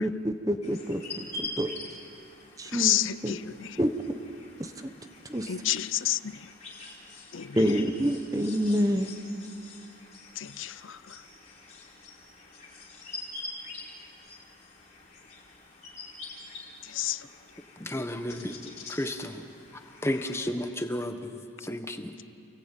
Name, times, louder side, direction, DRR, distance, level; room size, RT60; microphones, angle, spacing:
voice 1, 0.0-1.7 2.6-3.0 3.2-3.4 3.8-3.9 4.6-4.9 5.3-5.5 7.5-9.1, equal, 15° right, 7 dB, 1.1 m, -27 dB
sound 1, 0.6-20.5, left 2 dB, 35° left, 4.4 m, -45 dB
voice 2, 2.7-3.8 5.5-6.5 7.3-7.6 10.4-11.2 16.8-17.3, left 12 dB, 65° left, 17 dB, 0.6 m, -30 dB
voice 3, 17.8-19.4 20.0-22.1, left 1 dB, 10° left, 6 dB, 1.3 m, -33 dB
29.0 x 20.5 x 9.0 m, 2.6 s
head